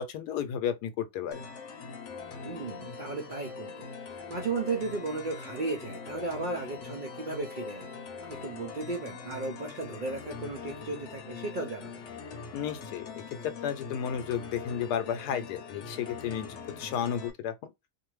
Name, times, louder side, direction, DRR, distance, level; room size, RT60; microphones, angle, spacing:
voice 1, 0.0-1.4 12.5-13.0 13.4-17.7, left 8 dB, 90° left, 1.2 m, -33 dB
sound 1, 1.3-17.3, left 5 dB, 60° left, 0.9 m, -42 dB
voice 2, 2.4-12.0, right 3 dB, 80° right, 0.4 m, -35 dB
2.6 x 2.5 x 3.0 m
omnidirectional pair, 1.7 m